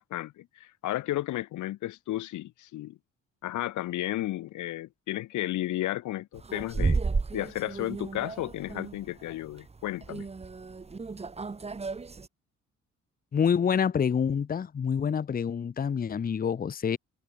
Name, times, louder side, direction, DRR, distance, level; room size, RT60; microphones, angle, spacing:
voice 1, 0.0-3.0 3.4-7.0 7.3-10.3, left 15 dB, 75° left, 0.9 m, -33 dB
sound 1, 6.4-12.3, right 4 dB, 20° right, 1.1 m, -33 dB
voice 2, 13.3-17.0, left 7 dB, 30° left, 0.7 m, -27 dB
cardioid pair, 90°, 30 cm